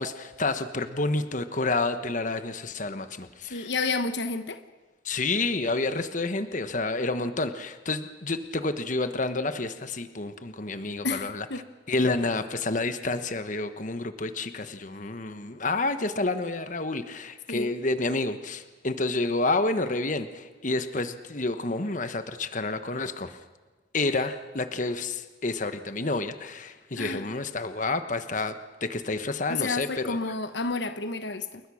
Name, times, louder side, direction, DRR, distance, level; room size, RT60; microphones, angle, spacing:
voice 1, 0.0-3.7 5.0-11.5 11.9-23.4 23.9-28.6 28.8-30.2, left 2 dB, 45° left, 10 dB, 1.3 m, -29 dB
voice 2, 3.5-4.6 11.0-11.7 17.5-17.7 27.0-27.3 29.5-31.6, left 3 dB, 70° left, 10 dB, 1.1 m, -30 dB
29.0 x 22.0 x 6.4 m, 1.3 s
head